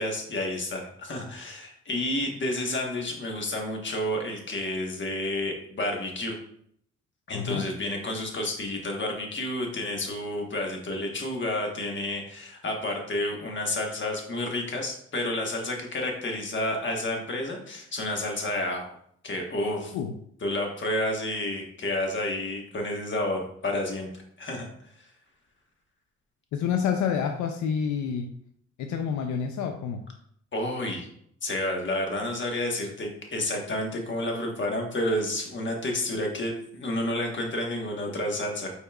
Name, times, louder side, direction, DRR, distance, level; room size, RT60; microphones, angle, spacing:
voice 1, 0.0-6.4 7.3-18.9 19.2-19.9 20.4-24.9 30.5-31.1 31.4-38.7, left 1 dB, 40° left, 1 dB, 1.3 m, -30 dB
voice 2, 7.3-7.7 19.9-20.1 26.5-28.3 28.8-30.0, left 7 dB, 75° left, 5 dB, 0.5 m, -28 dB
5.3 x 4.2 x 2.3 m, 0.67 s
cardioid pair, 90°, 30 cm